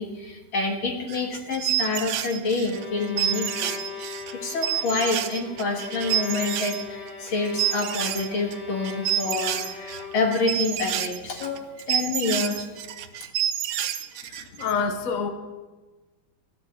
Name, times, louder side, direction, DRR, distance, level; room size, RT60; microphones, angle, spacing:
voice 1, 0.0-3.7 4.4-12.6, left 3 dB, 80° left, 2 dB, 2.6 m, -27 dB
sound 1, 1.1-6.8 7.1-8.6 8.8-14.7, right 11 dB, 80° right, 1.5 m, -29 dB
Bowed string instrument, 2.7-10.5, left 5 dB, 30° left, 2.4 m, -39 dB
voice 2, 14.6-15.3, left 5 dB, 50° left, 6 dB, 1.2 m, -26 dB
14.5 x 6.3 x 9.4 m, 1.3 s
omnidirectional pair, 2.2 m